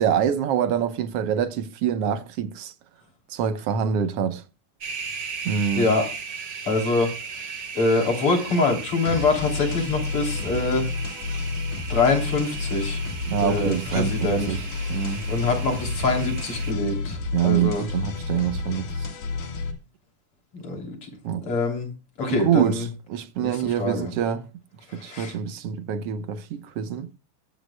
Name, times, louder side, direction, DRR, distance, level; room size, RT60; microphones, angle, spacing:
voice 1, 0.0-2.7 3.3-4.4 5.4-5.9 13.3-14.6 14.9-15.2 17.3-19.1 21.2-21.5 22.3-24.5 24.9-27.1, right 9 dB, 65° right, 1.6 m, -25 dB
sound 1, 4.8-16.7, right 5 dB, 45° right, 1.5 m, -36 dB
voice 2, 5.8-6.1 6.7-7.1 7.7-10.8 11.9-13.0 13.4-14.6 15.3-17.2 17.4-17.8 20.5-21.1 21.5-21.9 22.2-22.8 23.4-23.5 23.8-24.1 24.9-25.3, left 3 dB, 45° left, 4.0 m, -24 dB
sound 2, 9.1-19.7, left 3 dB, 80° left, 3.6 m, -30 dB
22.5 x 9.4 x 2.2 m
omnidirectional pair, 3.5 m